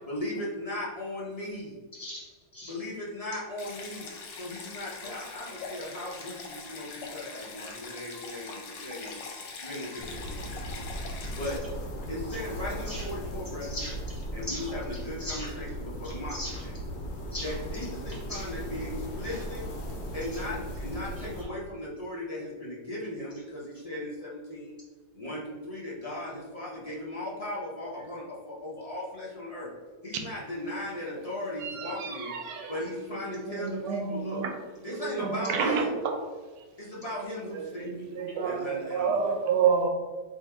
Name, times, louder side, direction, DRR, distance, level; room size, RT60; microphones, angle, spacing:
voice 1, 0.1-1.8 2.7-4.1 4.4-9.2 9.6-10.8 11.4-11.6 12.1-13.8 14.3-16.4 16.6-16.7 17.4-19.6 20.1-24.7 25.1-29.7 30.0-32.3 32.7-34.4 34.8-35.9 36.8-38.1 38.4-39.2, left 1 dB, 50° left, -6 dB, 0.4 m, -37 dB
voice 2, 1.9-2.7 12.3-12.4 12.9-13.1 13.7-15.5 16.0-16.6 17.3-17.5 18.3-18.5 19.2-19.4 20.3-20.4 21.2-21.5, left 1 dB, 15° left, -7 dB, 1.2 m, -40 dB
Stream, 3.6-11.6, left 4 dB, 80° left, 1.4 m, -42 dB
sound 1, 10.0-21.4, equal, 65° left, 1.2 m, -37 dB
voice 3, 31.6-32.8 33.1-34.5 34.9-36.2 36.6-36.7 37.5-39.9, right 6 dB, 75° right, 5 dB, 1.1 m, -29 dB
3.6 x 2.7 x 4.4 m, 1.3 s
omnidirectional pair, 1.9 m